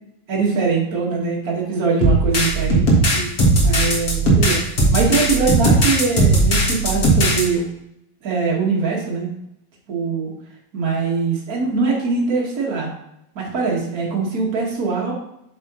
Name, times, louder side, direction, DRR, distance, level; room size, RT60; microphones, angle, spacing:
voice 1, 0.3-3.3 3.6-4.6 4.9-7.7 8.2-9.3 9.9-10.3 10.7-12.9 13.3-15.1, right 4 dB, 45° right, -3 dB, 1.2 m, -22 dB
sound 1, 2.0-7.4, right 1 dB, 55° left, 1.0 m, -17 dB
7.7 x 6.1 x 3.1 m, 0.80 s
omnidirectional pair, 4.3 m